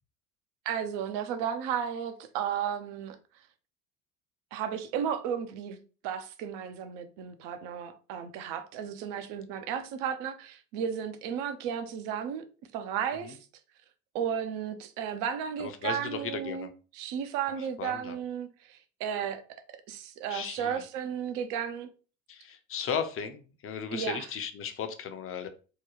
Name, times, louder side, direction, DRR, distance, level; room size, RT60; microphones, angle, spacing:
voice 1, 0.7-3.2 4.5-12.4 12.7-13.4 14.1-19.4 19.9-21.9 23.9-24.3, right 8 dB, 60° right, 0.6 m, -34 dB
voice 2, 15.6-16.7 17.6-18.2 20.3-20.8 22.3-25.5, left 7 dB, 35° left, 0.6 m, -36 dB
3.7 x 2.2 x 3.0 m
hypercardioid pair, 65°, 38 cm